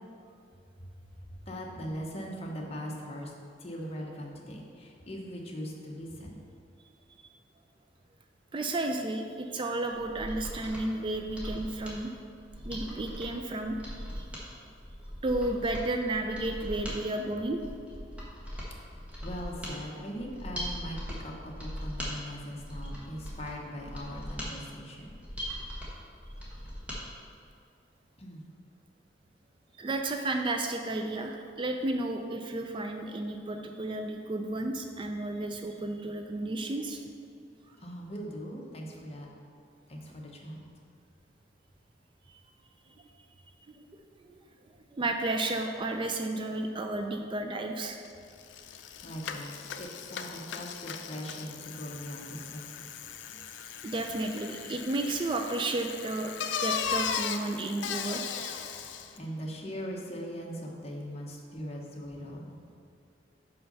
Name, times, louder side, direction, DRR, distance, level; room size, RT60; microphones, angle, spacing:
voice 1, 1.2-3.3 3.6-6.4 18.9-25.2 28.2-28.5 37.8-39.3 39.9-40.6 49.0-52.9 53.3-53.4 59.1-62.6, equal, 35° left, -1 dB, 1.0 m, -40 dB
voice 2, 8.5-12.1 12.6-14.3 15.2-17.6 29.8-37.0 42.3-42.4 43.7-43.8 44.2-44.4 44.9-48.0 53.8-56.3 56.6-58.6, right 2 dB, 30° right, 4 dB, 0.4 m, -32 dB
Mechanisms, 9.9-27.0 27.4-27.5, equal, 10° right, 1.3 m, -40 dB
Bicycle, 48.0-48.1 48.4-59.2, left 7 dB, 85° left, 0.4 m, -37 dB
5.6 x 5.5 x 5.3 m, 2.5 s
head